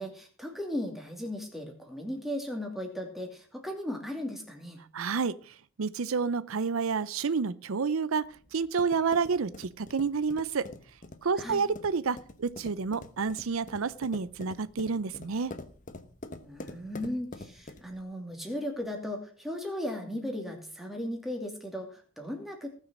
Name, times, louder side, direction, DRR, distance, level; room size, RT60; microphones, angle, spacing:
voice 1, 0.0-4.8 11.4-11.6 16.4-22.7, left 1 dB, ahead, 1 dB, 2.6 m, -36 dB
voice 2, 4.9-10.7 11.2-15.5, right 5 dB, 80° right, 17 dB, 0.6 m, -29 dB
sound 1, 8.2-18.0, left 2 dB, 40° left, 1.1 m, -46 dB
18.5 x 6.3 x 6.2 m, 0.43 s
head